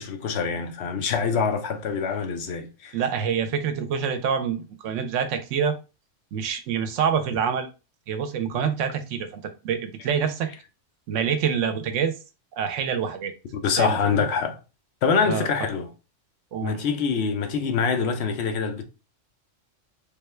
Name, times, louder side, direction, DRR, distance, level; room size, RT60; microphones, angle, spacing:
voice 1, 0.0-3.0 13.6-14.6 15.0-15.9 16.6-18.8, left 6 dB, 65° left, 0.9 m, -25 dB
voice 2, 2.9-5.8 6.3-7.7 8.1-10.5 11.1-12.1 12.5-13.3 13.8-14.3 15.2-15.5 16.5-16.8, right 7 dB, 80° right, 1.0 m, -26 dB
3.6 x 2.2 x 3.1 m
omnidirectional pair, 1.3 m